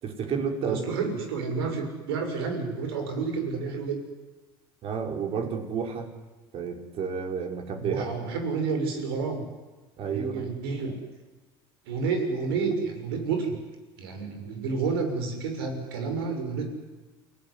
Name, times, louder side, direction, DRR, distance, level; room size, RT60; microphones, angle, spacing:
voice 1, 0.0-0.8 4.8-6.1 6.5-8.0 10.0-10.5, right 6 dB, 50° right, 4 dB, 5.5 m, -31 dB
voice 2, 0.6-4.0 7.8-9.4 10.0-11.0 11.8-13.6 14.0-16.7, right 4 dB, 85° right, 5 dB, 6.6 m, -30 dB
28.5 x 18.5 x 10.0 m, 1.2 s
supercardioid pair, 90°, 12 cm